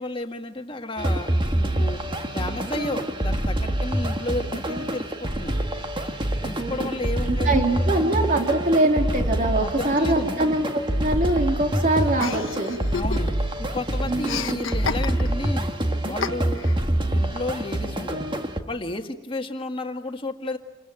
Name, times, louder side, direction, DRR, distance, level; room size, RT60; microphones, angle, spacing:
voice 1, 0.0-2.0 2.3-5.6 6.4-7.7 9.6-10.3 12.9-13.3 13.6-15.7 16.0-16.6 17.1-18.3 18.7-20.6, left 2 dB, 25° left, 5 dB, 1.8 m, -32 dB
sound 1, 1.0-18.6, right 1 dB, 25° right, 1.7 m, -26 dB
voice 2, 7.2-12.8 14.1-14.4, right 1 dB, 40° right, 3 dB, 3.2 m, -23 dB
Chuckle chortle, 12.2-13.6 13.8-15.5 16.2-16.8, left 6 dB, 80° left, 1.1 m, -31 dB
28.0 x 22.0 x 8.9 m, 1.1 s
head